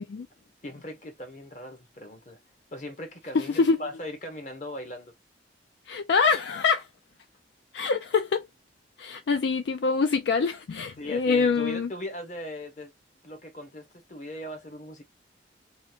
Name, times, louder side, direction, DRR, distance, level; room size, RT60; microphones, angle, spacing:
voice 1, 0.6-2.4 2.7-5.1 11.0-12.9 13.2-15.0, left 1 dB, 40° left, 1.1 m, -39 dB
voice 2, 3.3-3.8 5.9-6.9 7.7-8.5 9.0-11.9, left 5 dB, 70° left, 0.4 m, -25 dB
3.1 x 2.4 x 2.8 m
head